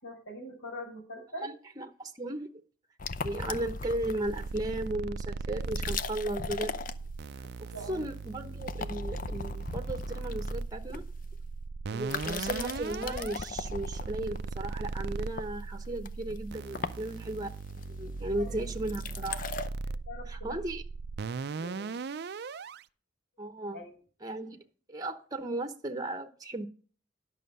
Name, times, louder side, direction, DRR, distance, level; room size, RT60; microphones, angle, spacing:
voice 1, 0.0-1.5 7.7-8.0 18.3-18.5 20.1-20.6 21.6-22.0 23.7-23.9, equal, 75° left, 5.7 m, -43 dB
voice 2, 1.4-2.5 3.2-6.7 7.6-11.0 11.9-17.5 17.9-19.5 20.3-20.8 23.4-23.8 24.2-24.6 24.9-26.7, right 1 dB, 20° right, 0.9 m, -36 dB
sound 1, 3.0-4.8 5.5-7.5 7.8-8.2 8.5-11.4 11.9-19.7, left 4 dB, 45° left, 0.6 m, -38 dB
sound 2, 4.2-22.8, right 4 dB, 55° right, 0.4 m, -38 dB
11.0 x 6.3 x 5.3 m
head